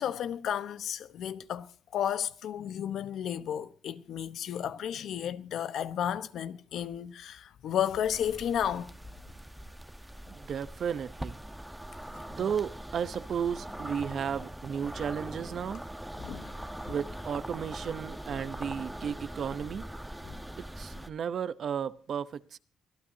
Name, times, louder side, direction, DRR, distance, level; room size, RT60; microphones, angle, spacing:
voice 1, 0.0-8.9 16.2-16.5 16.8-16.9 20.2-20.4, left 9 dB, 75° left, 1.0 m, -33 dB
sound 1, 8.0-21.1, right 1 dB, 5° right, 1.1 m, -42 dB
voice 2, 10.3-11.4 12.3-15.8 16.9-19.9 20.6-22.6, right 7 dB, 55° right, 0.8 m, -34 dB
24.5 x 15.0 x 2.7 m
cardioid pair, 90°, 0 cm